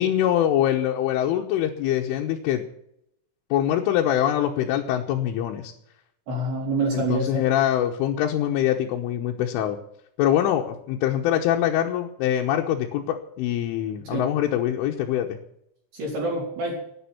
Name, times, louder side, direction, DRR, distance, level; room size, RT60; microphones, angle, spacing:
voice 1, 0.0-2.6 3.5-5.7 6.9-9.8 10.2-15.4, left 11 dB, 90° left, 0 dB, 3.6 m, -24 dB
voice 2, 6.3-7.5 14.1-14.3 15.9-16.8, right 2 dB, 55° right, -4 dB, 5.7 m, -26 dB
11.5 x 10.0 x 9.9 m, 0.75 s
omnidirectional pair, 5.6 m